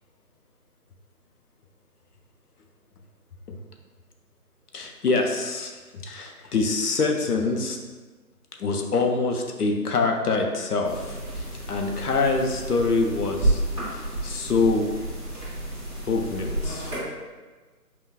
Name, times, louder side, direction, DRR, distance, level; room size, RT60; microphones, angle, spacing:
voice 1, 4.7-7.8 8.6-13.6 13.9-14.9 16.1-16.9, left 3 dB, 70° left, 2 dB, 0.7 m, -25 dB
sound 1, 10.8-17.0, right 1 dB, 20° right, 1.4 m, -30 dB
5.6 x 2.2 x 2.4 m, 1.3 s
figure-of-eight pair, 175°, 49 cm